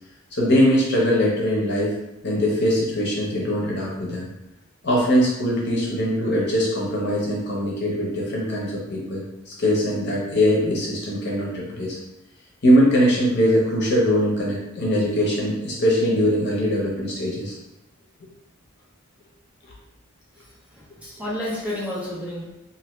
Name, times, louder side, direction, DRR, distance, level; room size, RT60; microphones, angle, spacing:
voice 1, 0.3-1.9 2.2-4.3 4.8-12.0 12.6-17.6, equal, 55° left, -4 dB, 0.9 m, -21 dB
voice 2, 20.4-22.5, left 1 dB, 5° right, -7 dB, 0.8 m, -31 dB
2.7 x 2.6 x 3.1 m, 0.91 s
head